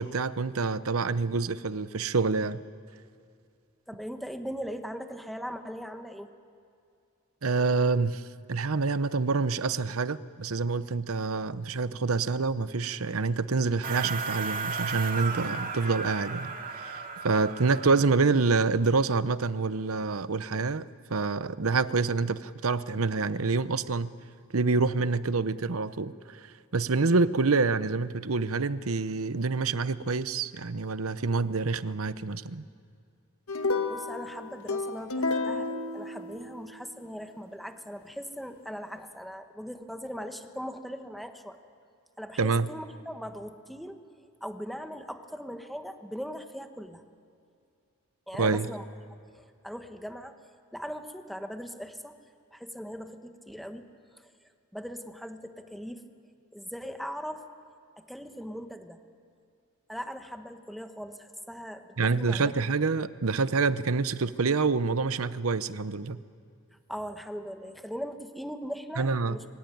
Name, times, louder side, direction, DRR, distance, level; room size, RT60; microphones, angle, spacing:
voice 1, 0.0-2.6 7.4-8.2 8.5-24.1 24.5-32.6 42.4-42.7 48.4-48.7 62.0-66.2 69.0-69.4, right 4 dB, 80° right, 0.8 m, -27 dB
voice 2, 3.9-6.3 33.7-41.6 42.2-44.0 44.4-47.0 48.3-48.8 49.3-50.4 50.7-52.2 52.5-53.9 54.1-54.3 54.7-56.0 56.5-57.4 58.0-59.0 59.9-62.5 66.9-69.5, equal, ahead, 1.5 m, -39 dB
sound 1, 13.8-18.3, right 5 dB, 40° right, 2.4 m, -35 dB
sound 2, 33.5-36.9, left 3 dB, 80° left, 1.6 m, -31 dB
24.5 x 24.0 x 9.4 m
head